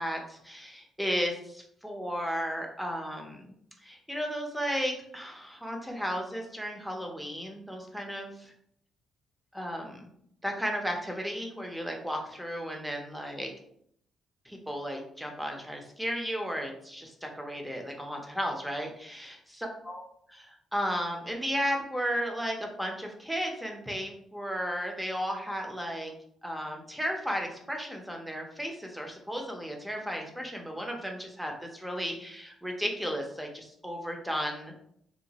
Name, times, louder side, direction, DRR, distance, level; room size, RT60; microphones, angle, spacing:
voice 1, 0.0-3.5 3.8-8.5 9.5-10.1 10.4-13.5 14.5-20.0 20.7-26.1 26.4-34.8, equal, 5° right, 2 dB, 0.6 m, -34 dB
2.9 x 2.1 x 2.8 m, 0.70 s
cardioid pair, 90°, 0 cm